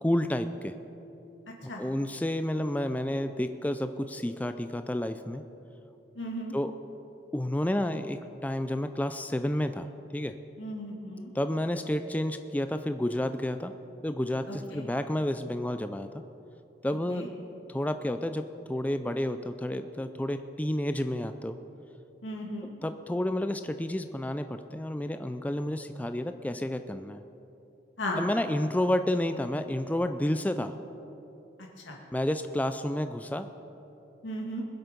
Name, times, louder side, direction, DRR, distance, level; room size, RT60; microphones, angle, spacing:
voice 1, 0.0-0.7 1.6-5.4 6.5-6.7 7.3-9.9 10.1-10.4 11.3-13.7 14.0-16.2 16.8-17.2 17.7-21.6 22.8-27.2 28.2-30.7 32.1-33.5, left 1 dB, 10° left, 9 dB, 0.3 m, -30 dB
voice 2, 6.1-6.6 10.6-11.3 14.5-14.8 17.1-17.3 22.2-22.7 28.0-28.2 31.8-32.0 34.2-34.6, left 1 dB, 85° left, -1 dB, 2.1 m, -36 dB
21.0 x 8.0 x 5.2 m, 2.9 s
head